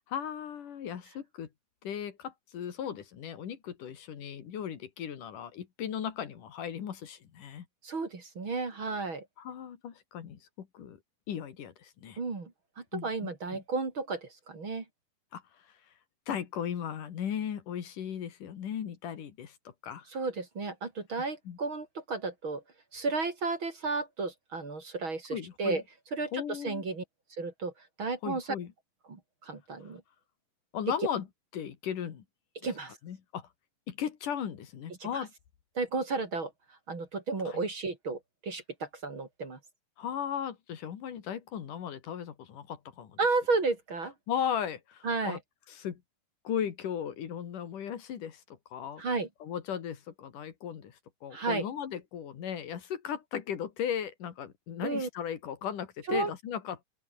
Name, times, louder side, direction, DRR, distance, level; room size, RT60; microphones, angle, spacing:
voice 1, 0.0-1.5 1.8-7.7 9.4-11.0 11.3-12.2 12.9-13.6 15.3-15.4 16.3-20.1 21.5-21.6 25.3-25.8 26.3-26.8 28.2-28.7 30.7-31.3 31.5-32.2 33.0-33.5 33.9-35.3 37.5-37.6 40.0-43.2 44.3-45.4 45.7-46.0 46.4-48.4 48.7-49.0 49.4-56.8, left 8 dB, 75° left, 3.7 m, -37 dB
voice 2, 7.8-9.3 12.2-12.5 12.8-14.8 20.1-22.6 22.9-25.8 26.1-27.0 27.4-27.7 28.0-28.5 29.1-30.0 32.6-33.0 35.0-35.2 35.8-36.5 36.9-39.6 43.2-44.1 45.0-45.4 49.0-49.3 51.3-51.6 54.8-55.1 56.1-56.3, right 3 dB, 40° right, 4.0 m, -33 dB
open air
omnidirectional pair, 3.7 m